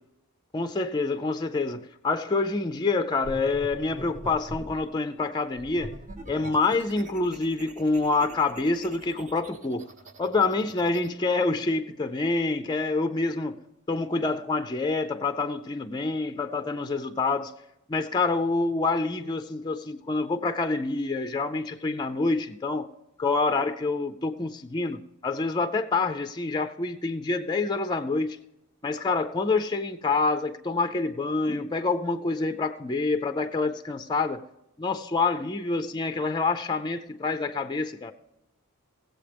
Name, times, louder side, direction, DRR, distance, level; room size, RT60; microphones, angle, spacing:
voice 1, 0.5-6.0 6.3-9.9 10.2-13.6 13.9-17.5 17.9-22.9 23.2-28.4 28.8-34.4 34.8-38.1, left 3 dB, 20° left, 0.4 m, -27 dB
sound 1, 3.2-4.8 5.5-11.1, right 1 dB, 35° right, 0.8 m, -43 dB
17.5 x 7.7 x 3.4 m
head